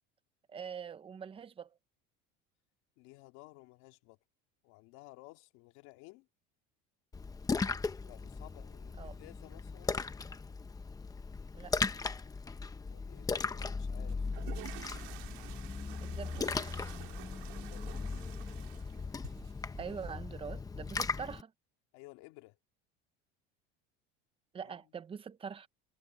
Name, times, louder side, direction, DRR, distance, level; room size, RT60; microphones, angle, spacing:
voice 1, 0.5-1.7 9.0-9.2 11.5-11.8 16.0-16.6 19.8-21.5 24.5-25.7, right 6 dB, 20° right, 0.8 m, -44 dB
voice 2, 3.0-4.2 4.6-6.3 8.0-10.0 12.9-14.3 17.6-18.3 19.9-20.0 21.9-22.6 24.6-25.0, left 22 dB, 65° left, 2.9 m, -56 dB
Splash splatter, 7.1-21.4, left 4 dB, 10° left, 0.9 m, -38 dB
sound 1, 14.1-20.1, right 24 dB, 70° right, 2.5 m, -50 dB
cardioid pair, 150°, 30 cm